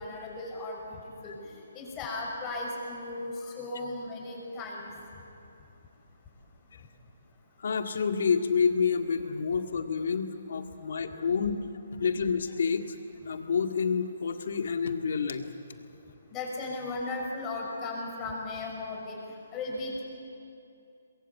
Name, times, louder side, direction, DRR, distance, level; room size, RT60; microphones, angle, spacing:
voice 1, 0.0-4.9 16.3-19.2 19.5-20.0, left 2 dB, 20° left, -1 dB, 5.9 m, -36 dB
voice 2, 7.6-11.6 12.0-13.0 13.2-15.8, left 6 dB, 65° left, 6 dB, 2.0 m, -29 dB
23.5 x 22.0 x 8.3 m, 2.7 s
hypercardioid pair, 155°, 0 cm